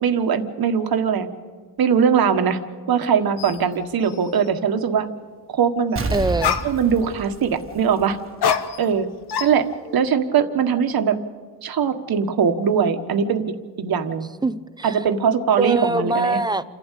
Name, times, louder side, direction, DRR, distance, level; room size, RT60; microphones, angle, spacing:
voice 1, 0.0-1.3 1.8-2.6 2.9-5.1 5.5-6.0 6.6-8.2 8.8-9.1 9.4-9.6 9.9-11.2 11.6-13.4 13.8-14.3 14.8-16.4, right 7 dB, 70° right, 8 dB, 1.5 m, -20 dB
sound 1, 3.4-3.6 4.0-4.5 6.0-6.1 6.4-7.1 8.4-9.0 9.3-10.0, left 7 dB, 85° left, 1.3 m, -26 dB
Explosion, 6.0-8.6 8.9-9.0, right 3 dB, 35° right, 1.5 m, -30 dB
voice 2, 6.1-6.6 14.4-15.0 15.6-16.6, right 2 dB, 10° right, 14 dB, 0.7 m, -23 dB
28.0 x 12.0 x 8.3 m, 1.5 s
cardioid pair, 105°, 38 cm